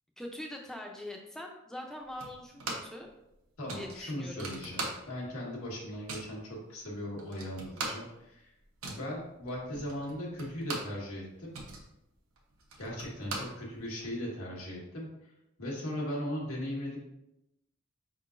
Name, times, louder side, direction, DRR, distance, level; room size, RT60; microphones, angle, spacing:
voice 1, 0.2-3.1 3.7-4.5, left 1 dB, ahead, 1 dB, 0.5 m, -43 dB
sound 1, 2.2-3.0 3.3-3.4 3.7-5.4 5.6-6.4 6.9-7.0 7.2-11.0 11.3-14.1, right 3 dB, 75° right, 0.9 m, -40 dB
voice 2, 3.6-8.5 8.9-11.6 12.8-15.1 15.6-17.0, equal, 85° left, -3 dB, 1.4 m, -38 dB
5.0 x 3.7 x 2.5 m, 0.88 s
head